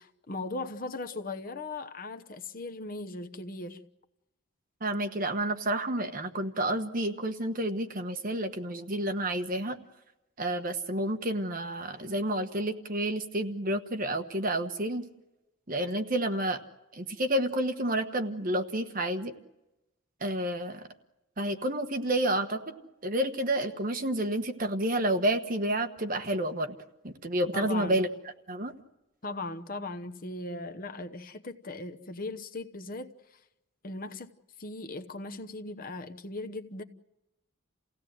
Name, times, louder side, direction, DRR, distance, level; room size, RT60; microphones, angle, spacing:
voice 1, 0.0-3.8 27.5-28.0 29.2-33.1 33.8-34.3 34.6-36.8, left 2 dB, 40° left, 0.9 m, -38 dB
voice 2, 4.8-9.8 10.4-15.0 15.7-16.6 16.9-19.3 20.2-20.9 21.4-22.6 23.0-26.8 27.0-28.1 28.5-28.7, right 1 dB, 40° right, 1.3 m, -30 dB
29.5 x 16.5 x 7.7 m
head